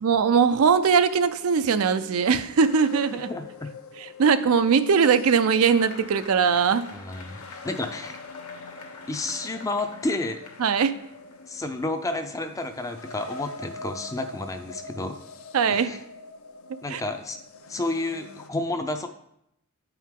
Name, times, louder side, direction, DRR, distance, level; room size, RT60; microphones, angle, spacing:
voice 1, 0.0-3.3 4.0-6.9 10.6-10.9 15.5-15.9 16.9-17.0, right 6 dB, 75° right, 12 dB, 0.4 m, -21 dB
sound 1, 0.5-18.5, left 3 dB, 70° left, 0.6 m, -44 dB
voice 2, 3.3-3.7 6.9-8.2 9.1-10.4 11.5-15.2 15.7-16.0 16.8-17.4 17.7-19.1, left 2 dB, 15° left, 7 dB, 0.4 m, -31 dB
Applause, 5.6-12.8, left 3 dB, 90° left, 1.4 m, -47 dB
8.9 x 4.6 x 3.6 m, 0.77 s
head